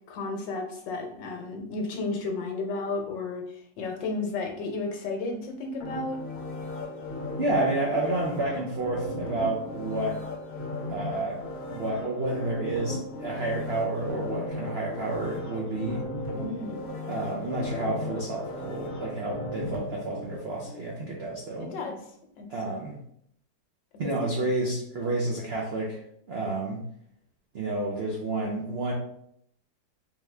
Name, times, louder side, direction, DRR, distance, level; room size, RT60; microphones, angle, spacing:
voice 1, 0.1-6.2 16.4-16.8 21.6-22.0 22.4-22.5 24.0-24.1 24.4-24.5, left 3 dB, 75° left, 3 dB, 1.4 m, -33 dB
sound 1, 5.8-20.9 21.3-21.4, left 2 dB, 45° left, 0.9 m, -36 dB
voice 2, 7.4-10.2 10.9-11.4 11.7-16.0 17.1-21.7 22.5-22.9 24.0-26.0 26.3-26.8 27.5-28.9, right 2 dB, 90° right, -2 dB, 0.5 m, -30 dB
3.7 x 3.1 x 3.3 m, 0.71 s
omnidirectional pair, 2.0 m